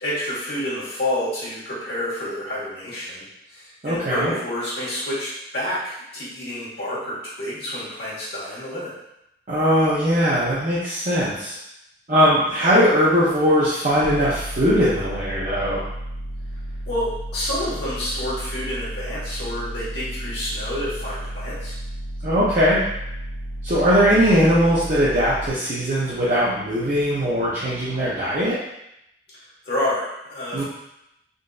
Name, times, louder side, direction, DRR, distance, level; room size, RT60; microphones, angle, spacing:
voice 1, 0.0-8.9 16.9-21.7 29.6-30.6, left 1 dB, 70° left, -8 dB, 1.4 m, -29 dB
voice 2, 3.8-4.3 9.5-11.5 12.1-15.9 22.2-22.8 23.6-28.6 30.5-30.6, equal, 45° right, -9 dB, 0.6 m, -20 dB
sound 1, 14.0-25.5, right 1 dB, 25° left, 0.3 m, -33 dB
3.8 x 2.5 x 2.4 m, 0.83 s
head